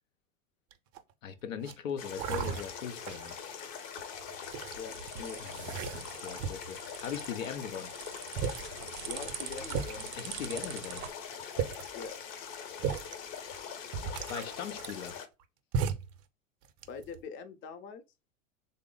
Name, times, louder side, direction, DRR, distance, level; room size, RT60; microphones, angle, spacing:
sound 1, 0.7-1.1 1.6-1.7 2.2-3.5 4.0-4.8 5.5-6.7 7.1-7.6 8.1-8.2 8.4-8.7 9.3-9.4 9.7-10.0 10.8-10.9 11.4-12.0 12.8-13.1 13.5-13.6 13.9-15.4 15.7-16.2 16.6-17.2, right 7 dB, 40° right, 0.6 m, -35 dB
voice 1, 1.2-3.4 5.4-7.9 10.2-11.0 13.8-15.2, left 8 dB, 80° left, 0.7 m, -40 dB
sound 2, 2.0-15.3, left 7 dB, 50° left, 0.9 m, -43 dB
sound 3, 4.3-11.1, right 9 dB, 90° right, 0.6 m, -45 dB
voice 2, 4.8-5.4 9.0-10.1 11.9-12.1 16.9-18.0, left 6 dB, 30° left, 0.6 m, -43 dB
3.2 x 2.0 x 3.8 m
hypercardioid pair, 100°, 39 cm